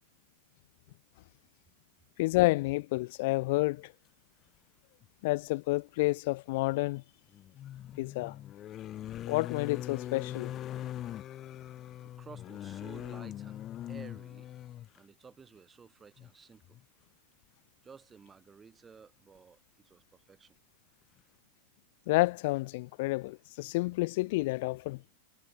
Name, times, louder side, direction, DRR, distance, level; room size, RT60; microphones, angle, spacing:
voice 1, 2.2-3.9 5.2-7.0 8.0-8.4 9.3-10.5 22.1-25.0, left 22 dB, 60° left, 0.4 m, -29 dB
sound 1, 5.0-5.1 7.3-15.0 16.2-16.3 16.6-16.8, left 12 dB, 35° left, 0.8 m, -41 dB
voice 2, 12.0-14.5 14.9-16.8 17.8-20.5, right 6 dB, 20° right, 6.2 m, -54 dB
hypercardioid pair, 110°, 0 cm